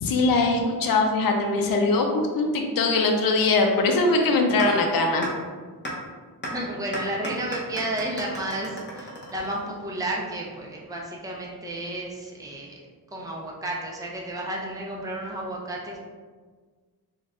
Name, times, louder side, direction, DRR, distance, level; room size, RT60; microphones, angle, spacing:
voice 1, 0.0-5.3, left 3 dB, 60° left, 2 dB, 0.6 m, -22 dB
sound 1, 4.6-4.7 5.2-5.3 5.8-5.9 6.4-6.5 6.9-9.9, equal, 30° left, 0.8 m, -34 dB
voice 2, 6.5-12.8 13.1-16.0, right 1 dB, 10° right, -2 dB, 0.5 m, -32 dB
4.4 x 2.3 x 3.6 m, 1.5 s
wide cardioid pair, 145°, 39 cm